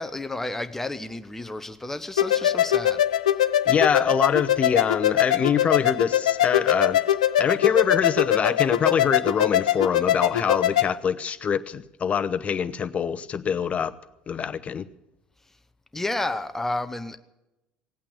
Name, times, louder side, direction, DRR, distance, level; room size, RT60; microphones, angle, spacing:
voice 1, 0.0-3.0 15.9-17.2, left 2 dB, 10° left, 1.0 m, -31 dB
sound 1, 2.2-10.9, left 11 dB, 85° left, 0.5 m, -22 dB
voice 2, 3.7-7.0 7.4-13.9 14.3-14.8, left 7 dB, 35° left, 0.9 m, -24 dB
18.0 x 8.7 x 8.5 m
hypercardioid pair, 65°, 4 cm